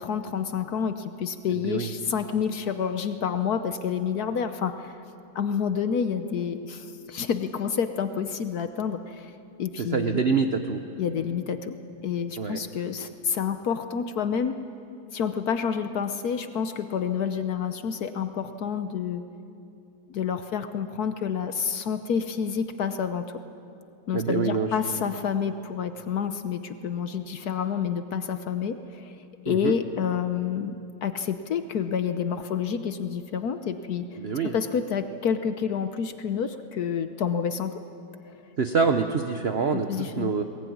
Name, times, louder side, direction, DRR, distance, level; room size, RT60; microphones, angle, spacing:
voice 1, 0.0-5.0 5.3-9.3 9.6-10.2 11.0-11.8 12.0-14.5 15.1-19.2 20.1-23.3 24.1-29.1 29.5-37.8 39.9-40.3, left 7 dB, 65° left, 9 dB, 1.3 m, -29 dB
voice 2, 9.8-10.8 12.4-12.6 24.1-24.7 29.5-29.7 34.2-34.6 38.6-40.4, right 5 dB, 45° right, 6 dB, 1.0 m, -25 dB
21.5 x 20.0 x 9.4 m, 2.7 s
omnidirectional pair, 1.8 m